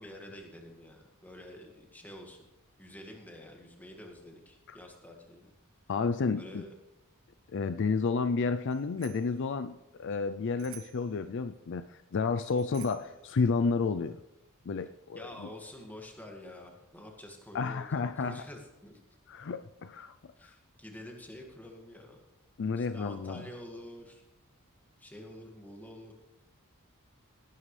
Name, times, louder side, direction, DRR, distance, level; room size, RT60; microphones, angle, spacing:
voice 1, 0.0-2.5 2.8-5.5 6.3-6.7 15.1-19.0 20.4-22.2 22.8-24.2 25.0-26.1, left 1 dB, 10° left, 1 dB, 2.0 m, -48 dB
voice 2, 5.9-6.6 7.5-11.8 12.1-14.2 14.7-15.5 17.5-18.4 19.3-20.2 20.4-20.5 22.6-23.5, left 4 dB, 55° left, 11 dB, 0.4 m, -31 dB
Bicycle bell, 8.7-9.4 10.6-11.1 12.4-13.2, right 10 dB, 70° right, 1.4 m, -51 dB
18.5 x 11.0 x 3.3 m, 0.94 s
head